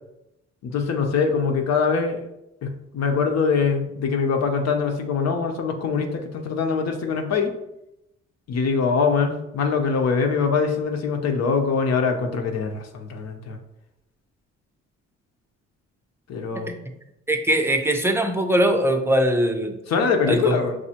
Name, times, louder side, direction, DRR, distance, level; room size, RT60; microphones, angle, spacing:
voice 1, 0.6-2.3 2.6-7.5 8.5-13.6 16.3-16.7 19.9-20.8, left 5 dB, 60° left, 4 dB, 0.7 m, -23 dB
voice 2, 17.3-19.8 20.3-20.6, right 1 dB, 10° right, 5 dB, 0.5 m, -21 dB
6.1 x 2.6 x 2.8 m, 0.86 s
cardioid pair, 90°, 30 cm